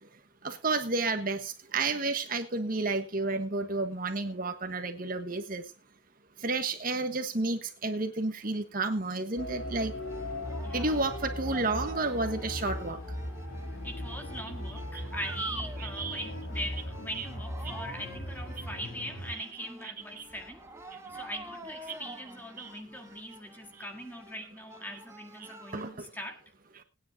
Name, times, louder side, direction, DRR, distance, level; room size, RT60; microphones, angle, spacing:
voice 1, 0.4-5.6 6.4-9.9 10.7-13.0 15.8-16.3 16.8-16.9 17.2-17.3 17.7-17.8 19.4-19.5 20.2-20.3 21.9-22.0 22.6-22.7 23.8-23.9 24.9-25.0 25.7-26.1, right 3 dB, 45° right, 1.4 m, -31 dB
sound 1, 9.4-19.3, left 1 dB, 90° left, 3.1 m, -38 dB
sound 2, 10.1-25.9, right 2 dB, 15° right, 1.3 m, -48 dB
voice 2, 10.6-11.0 13.8-26.4, equal, 10° left, 1.9 m, -41 dB
20.0 x 9.9 x 2.8 m
head